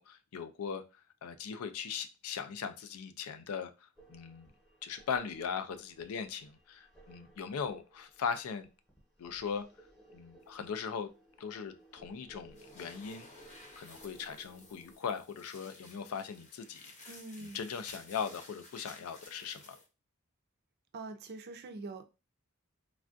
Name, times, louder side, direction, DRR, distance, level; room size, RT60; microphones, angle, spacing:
voice 1, 0.0-4.5 4.8-8.7 9.2-9.7 10.1-11.1 11.4-13.3 13.8-16.9 17.4-19.8, left 6 dB, 80° left, 0.4 m, -39 dB
sound 1, 4.0-15.0, right 1 dB, 5° left, 0.9 m, -60 dB
sound 2, 12.5-19.9, left 2 dB, 35° left, 0.8 m, -54 dB
voice 2, 17.1-17.6 20.9-22.0, right 3 dB, 50° right, 0.4 m, -44 dB
3.3 x 2.4 x 2.5 m
head